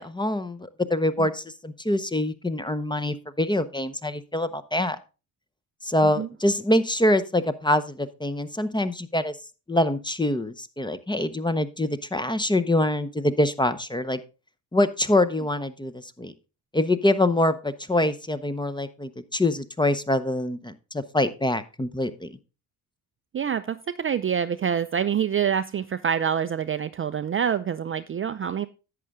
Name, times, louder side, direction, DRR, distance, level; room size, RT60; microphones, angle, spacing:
voice 1, 0.0-5.0 5.8-9.3 9.7-14.2 14.7-16.3 16.7-22.3, left 1 dB, 10° left, 12 dB, 0.7 m, -25 dB
voice 2, 23.3-28.7, right 8 dB, 30° right, 11 dB, 0.5 m, -26 dB
11.0 x 7.6 x 3.6 m, 0.31 s
hypercardioid pair, 45°, 46 cm